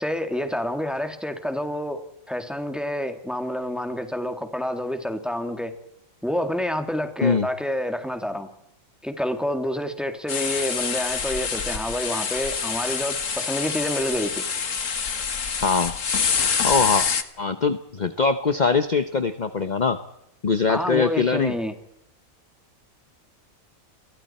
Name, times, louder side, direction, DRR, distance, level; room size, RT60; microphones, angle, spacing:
voice 1, 0.0-2.0 2.3-5.7 6.2-8.5 9.0-14.4 20.7-21.7, left 1 dB, ahead, 6 dB, 2.1 m, -28 dB
sound 1, 10.3-17.2, left 6 dB, 70° left, 1.8 m, -26 dB
voice 2, 15.6-15.9 16.6-17.1 17.4-20.0 20.4-21.5, left 4 dB, 35° left, 9 dB, 1.1 m, -22 dB
29.5 x 23.0 x 4.4 m, 0.80 s
omnidirectional pair, 1.4 m